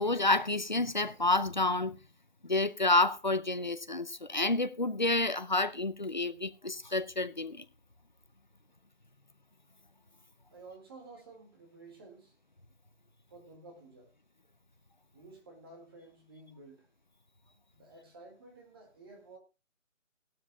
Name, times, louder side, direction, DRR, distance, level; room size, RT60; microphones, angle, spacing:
voice 1, 0.0-2.0 2.4-7.6, left 2 dB, 35° left, 0.6 m, -29 dB
voice 2, 10.5-12.3 13.3-14.1 15.1-16.9 17.7-19.4, right 3 dB, 20° right, 2.0 m, -52 dB
17.0 x 12.5 x 2.3 m
hypercardioid pair, 170°, 39 cm